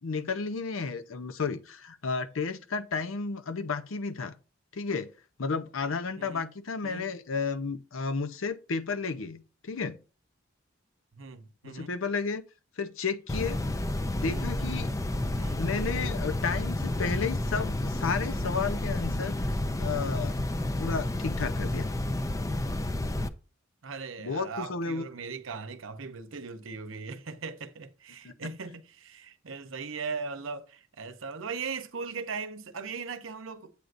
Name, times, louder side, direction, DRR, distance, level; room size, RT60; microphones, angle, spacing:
voice 1, 0.0-4.3 4.7-5.1 5.4-10.0 11.6-12.4 12.8-13.6 14.1-14.9 15.6-19.4 19.8-20.3 20.8-21.9 24.2-25.0 28.2-28.3, left 4 dB, 75° left, 0.7 m, -32 dB
voice 2, 6.2-6.5 6.8-7.1 11.1-11.9 14.3-14.5 15.4-15.6 23.8-33.8, right 5 dB, 70° right, 0.8 m, -39 dB
sound 1, 13.3-23.3, left 1 dB, 15° left, 0.4 m, -30 dB
8.4 x 7.9 x 2.5 m
head